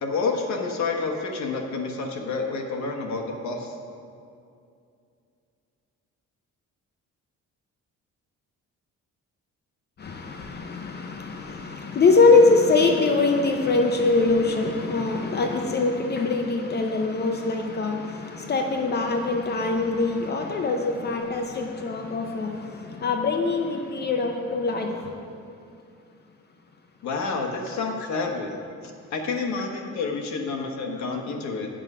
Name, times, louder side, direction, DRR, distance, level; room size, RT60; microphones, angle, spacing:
voice 1, 0.0-3.7 27.0-28.5 29.1-31.7, left 4 dB, 70° left, 2 dB, 1.2 m, -29 dB
voice 2, 10.0-18.0 18.3-22.5 23.0-24.9, left 3 dB, 35° left, 3 dB, 0.6 m, -23 dB
8.9 x 5.5 x 6.1 m, 2.4 s
cardioid pair, 170°, 30 cm